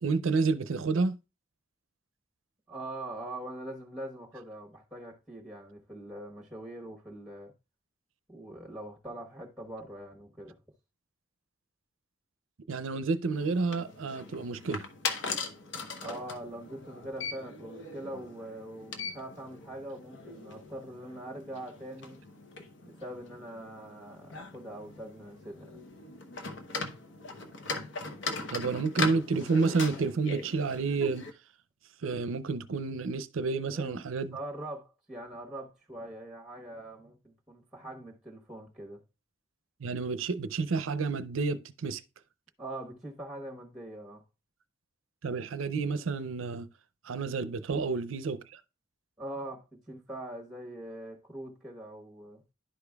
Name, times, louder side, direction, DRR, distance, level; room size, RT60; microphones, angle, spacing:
voice 1, 0.0-1.2 12.7-14.9 28.5-31.3 32.0-34.4 39.8-42.0 45.2-46.7 47.0-48.6, right 4 dB, 90° right, 0.5 m, -30 dB
voice 2, 2.7-7.5 8.3-10.6 16.0-22.2 22.8-25.8 33.7-34.0 34.3-39.0 42.6-44.2 47.7-47.8 49.2-52.4, right 1 dB, ahead, 1.1 m, -43 dB
sound 1, 13.3-31.3, left 3 dB, 70° left, 0.9 m, -40 dB
11.5 x 5.0 x 2.3 m
head